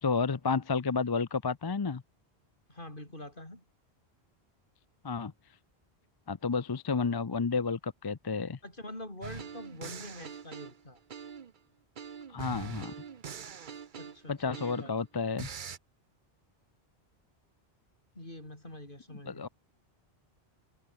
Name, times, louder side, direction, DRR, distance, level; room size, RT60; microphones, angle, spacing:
voice 1, 0.0-2.0 5.0-5.3 6.3-8.6 12.3-12.9 14.3-15.5 19.3-19.5, left 5 dB, 30° left, 0.5 m, -31 dB
voice 2, 2.7-3.6 8.6-11.0 14.0-14.9 18.1-19.5, left 1 dB, 50° left, 6.3 m, -45 dB
sound 1, 9.2-11.6 12.0-15.0 15.4-15.8, right 7 dB, 50° right, 1.0 m, -43 dB
omnidirectional pair, 1.1 m